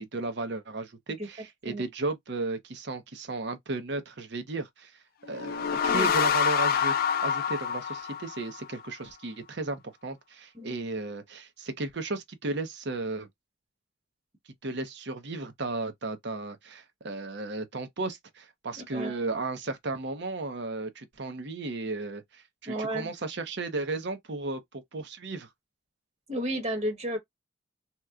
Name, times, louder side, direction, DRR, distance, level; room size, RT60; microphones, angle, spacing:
voice 1, 0.0-4.9 5.3-6.9 7.2-13.3 14.6-25.5, right 3 dB, 65° right, 0.8 m, -34 dB
sound 1, 5.3-8.8, left 7 dB, 50° left, 0.4 m, -27 dB
voice 2, 5.8-6.3 10.5-10.8 18.8-19.2 22.6-23.1 26.3-27.2, equal, 35° right, 1.2 m, -33 dB
3.0 x 2.2 x 3.6 m
head